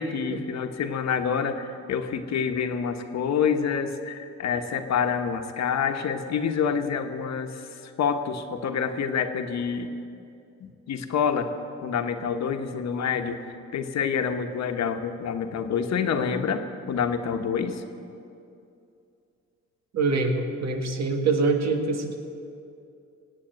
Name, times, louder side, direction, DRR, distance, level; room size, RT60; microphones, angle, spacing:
voice 1, 0.0-9.9 10.6-11.5 11.8-13.4 13.7-17.8, left 6 dB, 60° left, 7 dB, 1.2 m, -27 dB
voice 2, 19.9-22.2, right 3 dB, 60° right, 4 dB, 1.8 m, -24 dB
17.5 x 8.4 x 8.1 m, 2.6 s
cardioid pair, 90°, 30 cm